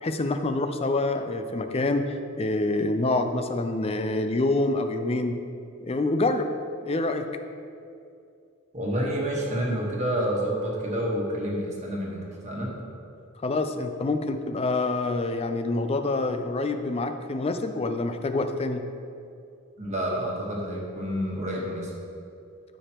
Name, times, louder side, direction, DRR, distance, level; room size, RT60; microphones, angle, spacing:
voice 1, 0.0-5.4 5.8-6.5 6.8-7.3 13.4-18.8, left 2 dB, 30° left, 8 dB, 0.4 m, -26 dB
voice 2, 8.7-12.7 19.8-21.9, equal, 30° right, -3 dB, 1.4 m, -29 dB
13.0 x 5.1 x 3.0 m, 2.5 s
head